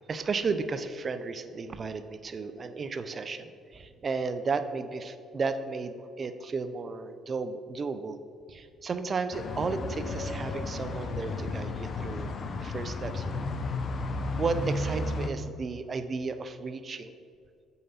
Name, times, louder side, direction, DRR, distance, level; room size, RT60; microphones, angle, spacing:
voice 1, 0.1-8.2 8.5-12.3 12.6-13.5 14.4-17.2, right 4 dB, 40° right, 10 dB, 0.6 m, -33 dB
sound 1, 9.3-15.3, left 2 dB, 45° left, 0.8 m, -33 dB
7.8 x 5.6 x 5.6 m, 2.3 s
supercardioid pair, 80°, 0 cm